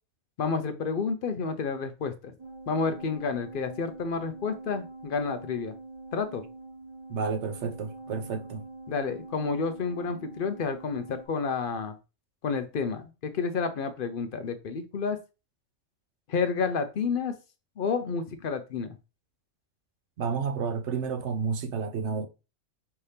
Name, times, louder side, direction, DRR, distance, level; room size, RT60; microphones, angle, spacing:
voice 1, 0.4-2.3 2.7-5.7 6.1-6.4 8.9-12.0 12.4-15.2 16.3-17.3 17.8-19.0, left 5 dB, 55° left, 0.6 m, -30 dB
sound 1, 2.4-11.3, right 2 dB, 25° right, 0.7 m, -45 dB
voice 2, 7.1-8.7 20.2-22.3, right 5 dB, 65° right, 0.9 m, -31 dB
5.6 x 2.8 x 3.3 m
omnidirectional pair, 1.4 m